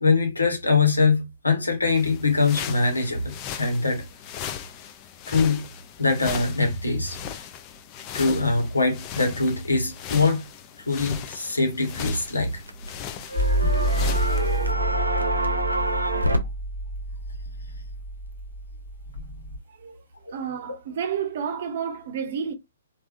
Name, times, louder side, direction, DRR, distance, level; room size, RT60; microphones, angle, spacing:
voice 1, 0.0-4.0 5.3-5.6 6.0-7.2 8.1-10.4 10.9-12.6 13.6-13.9 20.2-20.4, left 3 dB, 85° left, 1.2 m, -23 dB
sound 1, 2.0-14.7, left 9 dB, 30° left, 0.5 m, -38 dB
sound 2, 12.2-13.0 13.3-16.4, right 1 dB, 90° right, 0.7 m, -26 dB
sound 3, 13.4-19.6, right 1 dB, 55° left, 1.3 m, -28 dB
voice 2, 19.7-22.5, right 7 dB, 50° right, 0.7 m, -31 dB
3.4 x 2.5 x 2.4 m
figure-of-eight pair, 125°, 0 cm